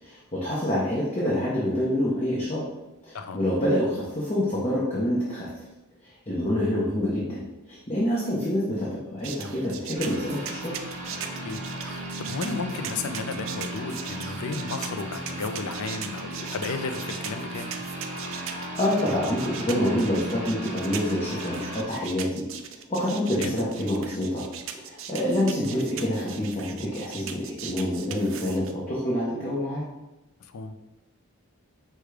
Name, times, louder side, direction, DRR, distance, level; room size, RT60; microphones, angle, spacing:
voice 1, 0.0-2.6 3.0-5.5 6.0-10.7 18.8-22.4 22.9-24.5 24.7-29.9, left 1 dB, 30° left, -7 dB, 0.7 m, -27 dB
sound 1, 9.2-28.7, right 8 dB, 65° right, 0.4 m, -39 dB
sound 2, 9.9-21.8, right 1 dB, 30° right, 1.0 m, -36 dB
voice 2, 11.8-17.7 23.4-23.6 30.5-30.8, left 4 dB, 80° left, 8 dB, 0.4 m, -33 dB
4.9 x 2.3 x 4.7 m, 0.99 s
head